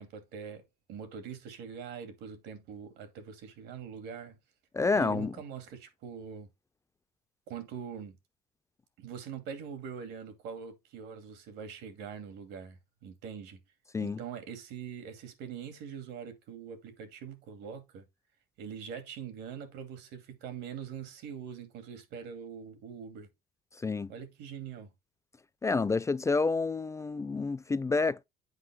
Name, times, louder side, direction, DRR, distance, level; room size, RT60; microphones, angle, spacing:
voice 1, 0.0-4.4 4.9-6.5 7.5-8.2 9.0-13.6 14.0-18.1 18.6-23.3 24.1-24.9, right 7 dB, 90° right, 2.5 m, -43 dB
voice 2, 4.7-5.3 13.9-14.2 23.8-24.1 25.6-28.2, left 4 dB, 15° left, 0.4 m, -29 dB
8.1 x 5.5 x 3.6 m
cardioid pair, 110°, 17 cm